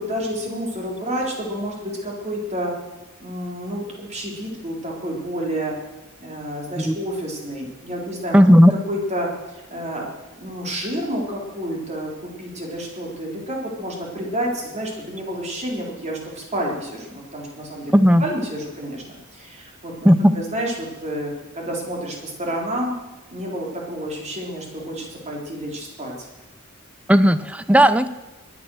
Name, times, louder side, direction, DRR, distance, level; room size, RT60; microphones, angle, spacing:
voice 1, 0.0-2.7 3.2-5.7 6.2-8.4 8.7-10.1 10.4-17.9 18.2-20.1 20.3-22.9 23.3-26.1, equal, 30° right, -1 dB, 3.7 m, -29 dB
voice 2, 8.3-8.7 17.9-18.2 20.0-20.3 27.1-28.1, equal, 5° right, 13 dB, 0.6 m, -14 dB
21.5 x 10.5 x 6.4 m, 1.1 s
head